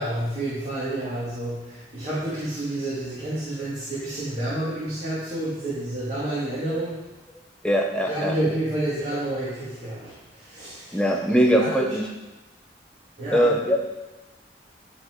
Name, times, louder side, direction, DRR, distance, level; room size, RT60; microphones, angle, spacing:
voice 1, 0.0-7.0 8.1-11.0 11.6-11.9 13.2-13.5, right 1 dB, 40° right, -10 dB, 2.4 m, -29 dB
voice 2, 7.6-8.3 10.9-12.1 13.3-13.8, equal, 5° left, 0 dB, 1.0 m, -21 dB
11.5 x 4.2 x 4.7 m, 1.1 s
head